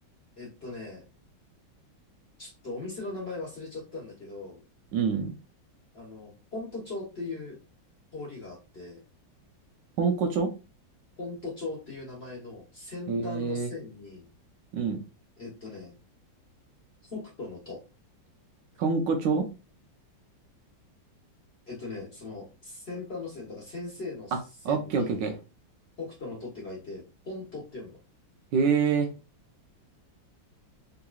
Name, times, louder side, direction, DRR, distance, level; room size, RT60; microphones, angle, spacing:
voice 1, 0.4-1.0 2.4-4.6 5.9-7.6 8.1-9.0 11.2-14.2 15.4-15.9 17.0-17.8 21.7-24.3 24.7-25.3 26.0-28.0, left 3 dB, 40° left, 1.0 m, -39 dB
voice 2, 4.9-5.3 10.0-10.5 13.1-13.7 14.7-15.0 18.8-19.5 24.6-25.4 28.5-29.1, right 5 dB, 75° right, 1.2 m, -26 dB
3.7 x 2.9 x 2.3 m
omnidirectional pair, 2.1 m